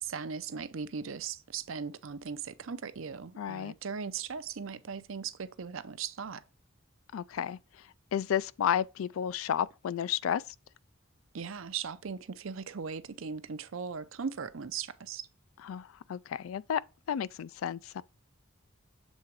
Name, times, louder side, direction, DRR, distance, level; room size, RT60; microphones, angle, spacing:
voice 1, 0.0-6.4 11.3-15.3, right 6 dB, 80° right, 0.6 m, -38 dB
voice 2, 3.4-3.7 7.1-7.6 8.1-10.4 15.6-16.8 17.1-18.0, left 9 dB, 90° left, 0.3 m, -32 dB
7.3 x 3.7 x 4.6 m
head